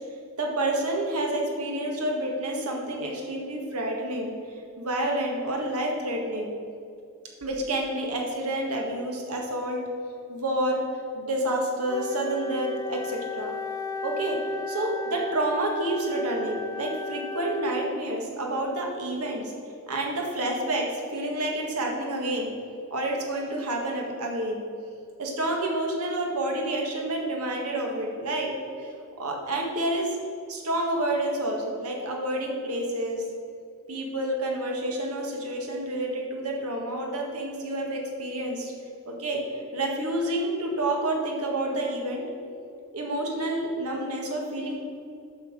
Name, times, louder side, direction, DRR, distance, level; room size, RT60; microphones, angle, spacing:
voice 1, 0.4-4.3 4.8-6.5 7.4-9.8 10.3-10.8 11.1-13.5 14.0-14.4 14.7-19.5 19.9-22.5 22.9-24.7 25.2-28.9 29.2-30.2 30.5-33.2 33.9-38.7 39.1-39.4 39.7-42.2 42.9-44.8, right 1 dB, 80° right, 0 dB, 1.7 m, -29 dB
Wind instrument woodwind instrument, 11.9-18.2, left 3 dB, 15° left, 0.3 m, -35 dB
8.1 x 5.8 x 6.5 m, 2.4 s
head